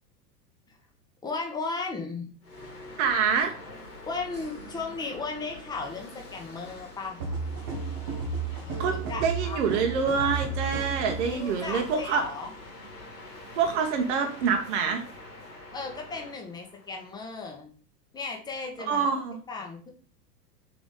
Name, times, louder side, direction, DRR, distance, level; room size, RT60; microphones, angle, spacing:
voice 1, 1.2-2.3 4.0-7.2 8.9-9.6 11.3-12.5 15.7-17.7 18.1-19.1 19.5-19.9, left 4 dB, 10° left, 1 dB, 0.7 m, -35 dB
sound 1, 2.4-17.5, left 2 dB, 80° left, 1.9 m, -45 dB
voice 2, 3.0-3.5 8.8-12.2 13.6-15.0 18.9-19.4, right 6 dB, 45° right, 5 dB, 0.8 m, -26 dB
sound 2, 7.2-11.4, right 4 dB, 15° right, 0.3 m, -33 dB
3.8 x 3.4 x 3.9 m, 0.42 s
figure-of-eight pair, 90°, 49 cm